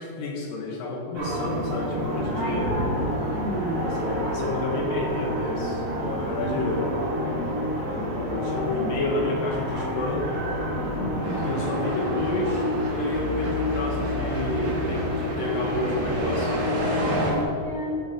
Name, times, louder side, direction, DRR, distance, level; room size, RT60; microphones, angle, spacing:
voice 1, 0.0-2.8 3.8-6.9 7.9-10.3 11.4-17.4, left 2 dB, 75° left, -1 dB, 2.7 m, -31 dB
sound 1, 1.2-17.4, left 1 dB, 60° right, 3.7 m, -28 dB
voice 2, 2.3-3.8 6.3-6.7 10.9-11.7 17.1-18.0, equal, 45° right, -8 dB, 1.8 m, -33 dB
sound 2, 11.2-17.3, right 2 dB, 90° right, 0.8 m, -32 dB
10.5 x 4.8 x 5.4 m, 2.7 s
omnidirectional pair, 4.2 m